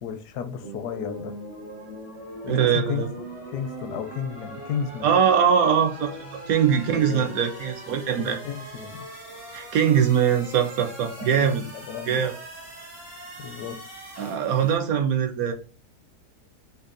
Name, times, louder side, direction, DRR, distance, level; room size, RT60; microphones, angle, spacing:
voice 1, 0.0-1.4 2.4-3.0 3.5-5.1 6.6-7.4 8.2-9.1 11.2-12.3 13.4-13.8, left 8 dB, 80° left, 1.1 m, -33 dB
sound 1, 0.6-14.8, right 1 dB, 85° right, 2.2 m, -41 dB
voice 2, 2.5-3.1 5.0-8.4 9.5-11.6 12.1-12.3 14.2-15.5, right 8 dB, 70° right, 0.9 m, -22 dB
5.2 x 2.3 x 2.5 m
omnidirectional pair, 1.7 m